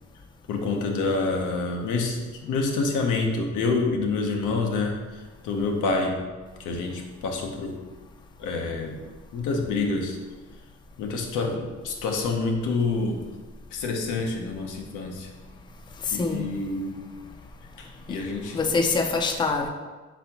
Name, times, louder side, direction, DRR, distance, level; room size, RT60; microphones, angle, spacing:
voice 1, 0.5-6.2 6.6-7.8 8.4-9.0 9.3-10.2 11.0-13.2 13.7-15.3 16.1-17.0 17.8-18.6, left 3 dB, 85° left, 2 dB, 0.7 m, -27 dB
voice 2, 16.1-16.5 18.1-18.2 18.5-19.7, left 4 dB, 15° left, 4 dB, 0.4 m, -24 dB
4.0 x 3.8 x 2.8 m, 1.3 s
cardioid pair, 90°, 30 cm